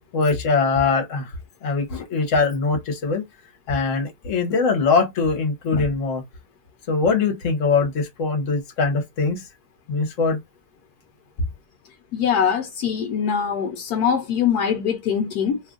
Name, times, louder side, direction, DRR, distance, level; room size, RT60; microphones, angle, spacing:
voice 1, 0.1-1.3 1.6-3.2 3.7-6.2 6.9-9.4 9.9-10.4, left 4 dB, 55° left, 1.3 m, -22 dB
voice 2, 12.1-15.6, left 7 dB, 80° left, 1.1 m, -22 dB
3.0 x 2.4 x 3.6 m
omnidirectional pair, 1.7 m